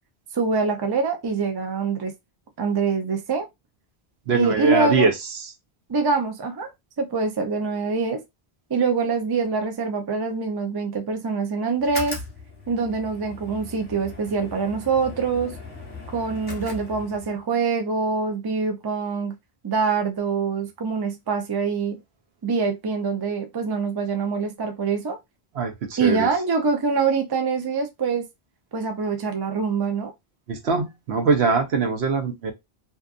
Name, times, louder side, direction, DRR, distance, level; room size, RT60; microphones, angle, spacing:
voice 1, 0.3-2.1 2.6-3.5 4.3-5.1 5.9-6.7 7.0-8.2 8.7-12.2 12.7-15.6 16.1-19.4 19.6-22.0 22.4-25.2 26.0-28.3 28.7-30.1, right 4 dB, 30° right, 0.4 m, -24 dB
voice 2, 4.3-5.5 25.5-26.3 30.5-32.5, right 4 dB, 85° right, 1.0 m, -22 dB
sound 1, 11.8-17.4, left 3 dB, 10° left, 0.9 m, -38 dB
2.7 x 2.3 x 2.4 m
omnidirectional pair, 1.1 m